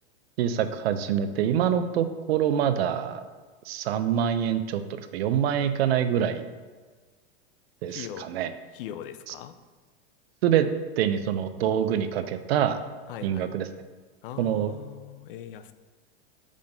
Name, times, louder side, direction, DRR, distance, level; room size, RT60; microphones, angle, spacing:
voice 1, 0.4-3.2 3.7-6.5 7.8-8.5 9.3-9.4 10.4-10.7 11.0-12.8 13.2-13.7 14.4-14.7, right 9 dB, 70° right, 10 dB, 0.7 m, -25 dB
voice 2, 7.9-8.3 8.7-9.5 13.1-13.6 14.2-15.7, left 10 dB, 55° left, 11 dB, 0.5 m, -40 dB
5.4 x 5.0 x 5.3 m, 1.4 s
supercardioid pair, 150°, 32 cm